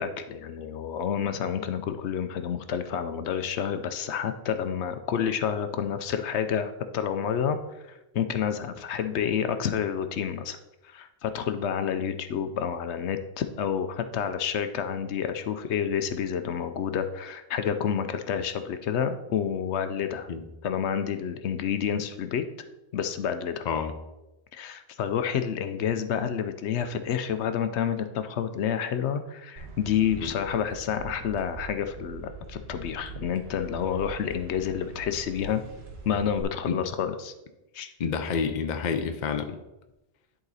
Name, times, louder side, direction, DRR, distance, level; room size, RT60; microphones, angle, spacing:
voice 1, 0.0-7.6 7.9-10.6 10.8-20.3 20.6-22.4 22.9-23.6 24.5-35.6 36.0-37.3 37.7-37.9, left 8 dB, 75° left, 9 dB, 0.9 m, -29 dB
sound 1, 29.6-36.4, right 4 dB, 65° right, 1.5 m, -43 dB
voice 2, 38.0-39.6, left 6 dB, 50° left, 7 dB, 0.7 m, -29 dB
10.5 x 4.0 x 4.0 m, 0.98 s
omnidirectional pair, 1.2 m